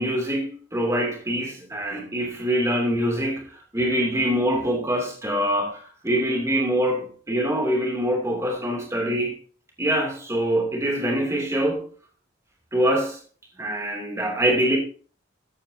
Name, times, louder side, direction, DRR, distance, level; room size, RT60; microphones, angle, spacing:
voice 1, 0.0-3.4 3.7-9.3 9.8-11.8 12.7-13.2 13.6-14.8, equal, 15° right, 2.7 m, -24 dB
14.0 x 9.0 x 2.8 m
head